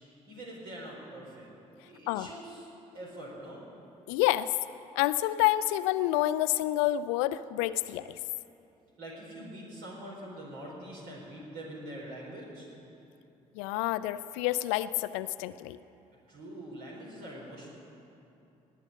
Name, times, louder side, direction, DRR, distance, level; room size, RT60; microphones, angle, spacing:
voice 1, 0.3-1.5 1.8-2.7 2.9-3.6 9.0-12.7 16.3-17.7, right 1 dB, 65° right, -3 dB, 4.3 m, -44 dB
voice 2, 4.1-4.5 5.0-8.1 13.6-15.8, left 15 dB, 65° left, 15 dB, 0.4 m, -28 dB
19.0 x 9.0 x 6.8 m, 2.8 s
figure-of-eight pair, 50°, 18 cm